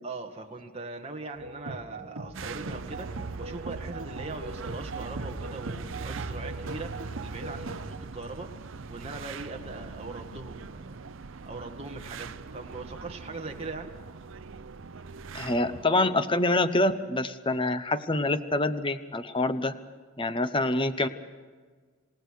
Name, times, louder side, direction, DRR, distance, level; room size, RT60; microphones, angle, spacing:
voice 1, 0.0-8.5 8.9-11.0 11.5-13.9, right 3 dB, 30° right, 2 dB, 1.9 m, -40 dB
sound 1, 1.4-8.0, right 2 dB, 85° right, 1.4 m, -40 dB
sound 2, 2.3-15.9, right 4 dB, 65° right, 0.6 m, -41 dB
voice 2, 15.3-19.7 20.2-21.1, left 2 dB, 25° left, 11 dB, 0.8 m, -26 dB
27.5 x 17.5 x 6.5 m, 1.5 s
head